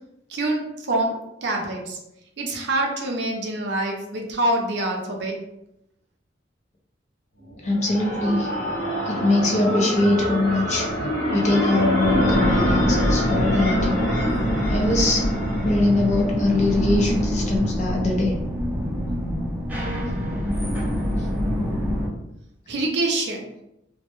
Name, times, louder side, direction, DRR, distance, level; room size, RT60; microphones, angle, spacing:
voice 1, 0.3-2.0 2.4-5.4 22.7-23.4, right 1 dB, 65° right, 1 dB, 0.5 m, -25 dB
sound 1, 7.5-16.3, equal, 90° left, 0.8 m, -26 dB
voice 2, 7.6-8.5 9.1-10.9 11.3-14.0 14.7-15.2 15.6-18.4, left 2 dB, 40° left, 0 dB, 0.5 m, -22 dB
sound 2, 12.0-22.1, equal, 10° right, 0.5 m, -24 dB
2.1 x 2.1 x 2.9 m, 0.84 s
head